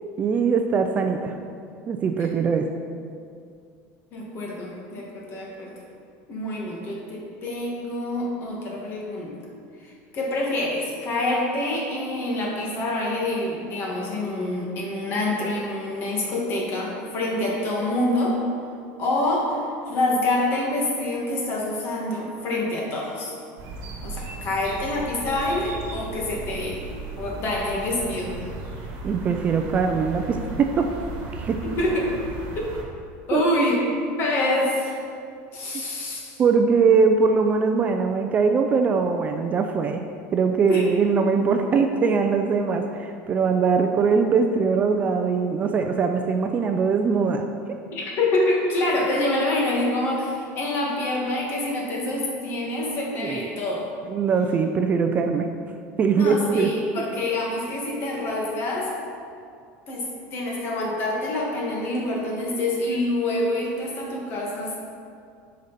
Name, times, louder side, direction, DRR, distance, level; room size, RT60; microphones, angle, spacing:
voice 1, 0.2-1.3 1.9-2.6 29.0-30.9 31.3-31.6 33.3-33.4 36.4-40.0 40.3-47.8 53.2-53.5 54.1-55.5 56.0-56.7, right 5 dB, 25° right, 5 dB, 0.4 m, -21 dB
voice 2, 4.1-5.7 6.3-9.3 9.8-18.4 19.0-23.3 24.0-26.8 27.2-28.3 31.6-32.0 32.5-32.6 33.3-33.8 34.2-35.0 35.5-36.4 40.7-40.8 47.9-53.8 56.1-58.9 59.9-64.8, left 1 dB, 40° left, -2 dB, 1.8 m, -26 dB
sound 1, 23.6-32.8, right 3 dB, 50° right, 1.6 m, -36 dB
9.3 x 5.2 x 4.1 m, 2.3 s
cardioid pair, 155°, 6 cm